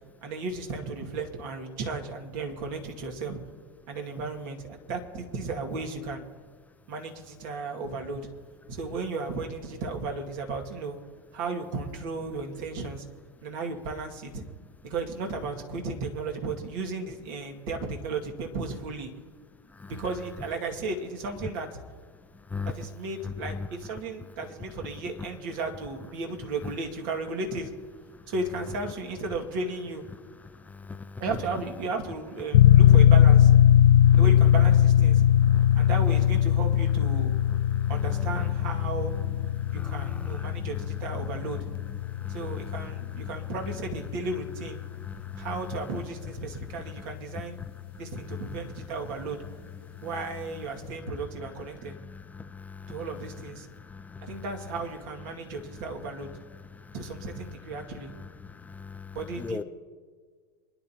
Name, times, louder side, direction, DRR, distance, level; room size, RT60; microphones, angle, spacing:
voice 1, 0.2-3.4 3.9-6.2 6.9-8.3 8.7-11.0 11.3-13.1 13.4-14.4 14.8-19.1 19.9-21.8 22.7-27.7 28.3-30.0 31.2-33.5 34.2-35.2 35.7-37.3 37.9-39.1 39.7-41.7 42.3-44.8 45.4-47.6 48.0-49.4 50.0-52.0 52.9-53.7 54.2-56.3 56.9-58.2 59.1-59.6, right 3 dB, 60° right, 1 dB, 2.2 m, -34 dB
voice 2, 23.2-23.7 30.5-31.2 34.0-34.2 35.4-35.9 37.5-38.5 39.1-39.2 39.6-40.9 41.4-41.5 42.0-42.9 43.3-43.4 45.0-45.7 48.3-48.6 49.9-50.1 51.4-51.5 51.9-53.1 53.7-54.4 56.7-56.9 58.2-59.6, left 4 dB, 10° left, 9 dB, 0.6 m, -40 dB
sound 1, 32.5-47.0, left 11 dB, 75° left, 0.5 m, -21 dB
27.0 x 10.5 x 3.0 m, 1.5 s
hypercardioid pair, 90°, 12 cm